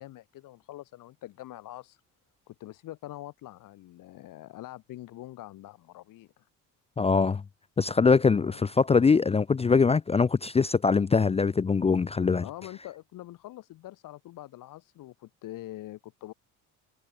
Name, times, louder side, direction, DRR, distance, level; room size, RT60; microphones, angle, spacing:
voice 1, 0.0-2.0 2.5-6.5 8.4-8.6 12.4-16.3, left 15 dB, 70° left, 1.6 m, -44 dB
voice 2, 7.0-7.4 7.8-12.5, left 5 dB, 20° left, 0.5 m, -23 dB
cardioid pair, 105°, 34 cm